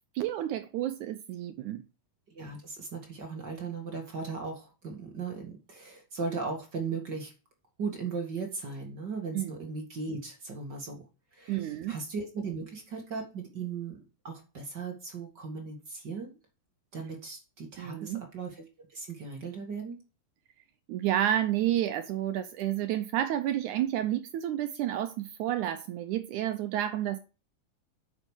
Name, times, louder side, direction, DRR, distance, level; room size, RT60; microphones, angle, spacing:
voice 1, 0.2-1.8 9.3-9.5 11.5-12.0 17.8-18.2 20.9-27.2, right 12 dB, 75° right, 1.8 m, -30 dB
voice 2, 2.3-7.3 7.8-11.0 11.3-14.0 14.2-16.4 16.9-18.6 18.9-20.0, right 4 dB, 40° right, 1.9 m, -37 dB
8.8 x 6.6 x 6.4 m
omnidirectional pair, 4.1 m